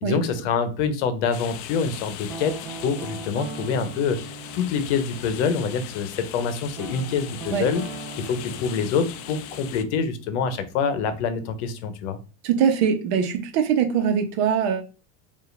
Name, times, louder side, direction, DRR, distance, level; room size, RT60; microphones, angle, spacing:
voice 1, 0.0-4.2 4.5-7.8 8.2-12.2, left 6 dB, 70° left, 10 dB, 0.8 m, -26 dB
sound 1, 1.3-9.8, left 10 dB, 40° left, 0.4 m, -39 dB
Guitar, 2.3-6.1 6.7-11.5, right 5 dB, 40° right, 0.6 m, -40 dB
voice 2, 12.4-14.8, right 7 dB, 60° right, 6 dB, 0.9 m, -22 dB
4.6 x 2.6 x 3.3 m, 0.34 s
supercardioid pair, 150°, 37 cm